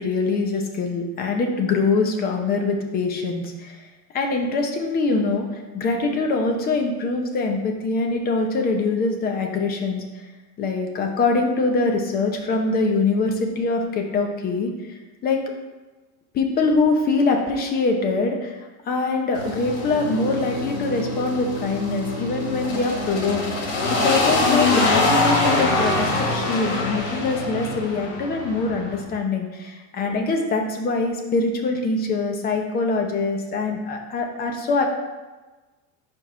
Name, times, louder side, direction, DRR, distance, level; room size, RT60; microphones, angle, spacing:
voice 1, 0.0-3.8 4.1-10.3 10.6-15.4 16.3-23.7 24.0-34.8, left 3 dB, 25° left, 3 dB, 0.7 m, -23 dB
sound 1, 19.3-29.0, left 2 dB, 80° left, 2.1 m, -24 dB
4.8 x 4.8 x 5.5 m, 1.2 s
cardioid pair, 170°, 35 cm